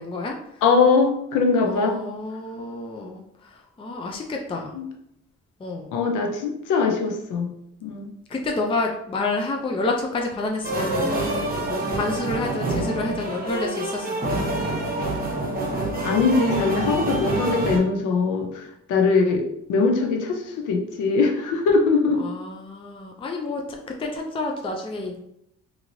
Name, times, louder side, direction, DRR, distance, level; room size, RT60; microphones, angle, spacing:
voice 1, 0.0-0.6 1.6-4.8 5.6-5.9 8.3-14.6 22.2-25.2, left 2 dB, 20° left, 1 dB, 0.4 m, -29 dB
voice 2, 0.6-2.0 4.7-4.9 5.9-7.5 7.8-8.1 16.0-18.6 18.9-19.4 19.7-22.2, left 4 dB, 90° left, 2 dB, 0.7 m, -21 dB
sound 1, 10.6-17.8, right 2 dB, 30° right, 0.8 m, -26 dB
2.9 x 2.7 x 2.7 m, 0.76 s
cardioid pair, 90°, 30 cm